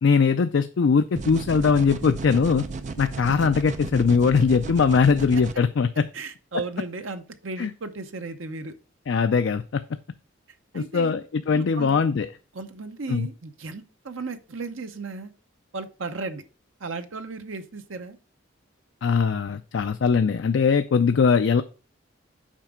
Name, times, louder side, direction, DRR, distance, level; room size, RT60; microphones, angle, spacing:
voice 1, 0.0-2.7 3.0-6.1 7.6-7.7 9.1-9.8 10.7-12.3 13.1-13.3 19.0-21.6, left 5 dB, 65° left, 9 dB, 0.4 m, -21 dB
sound 1, 1.2-5.5, right 3 dB, 35° right, 0.5 m, -34 dB
voice 2, 6.1-8.7 10.7-11.1 11.5-12.0 12.5-15.3 15.7-16.4 16.8-18.2, right 3 dB, 75° right, 8 dB, 0.8 m, -35 dB
7.4 x 4.9 x 3.6 m, 0.36 s
head